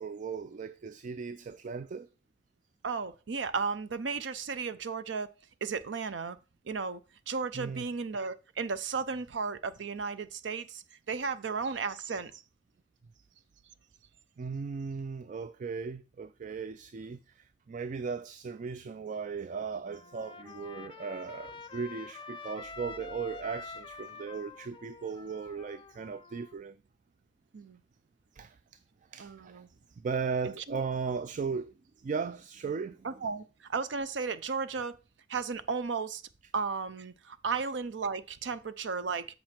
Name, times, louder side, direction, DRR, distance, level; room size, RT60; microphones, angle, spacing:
voice 1, 0.0-2.1 7.5-7.9 13.2-13.3 14.4-26.8 28.3-28.8 29.1-29.6 29.9-33.1, right 5 dB, 45° right, 0.3 m, -37 dB
voice 2, 2.8-5.3 5.6-6.4 6.6-7.0 7.3-12.4 27.5-27.8 29.2-29.7 30.4-30.8 33.0-35.0 35.3-36.2 36.5-39.3, right 5 dB, 80° right, 0.6 m, -34 dB
Trumpet, 19.9-26.5, left 4 dB, 30° left, 0.4 m, -47 dB
7.7 x 5.3 x 4.3 m
head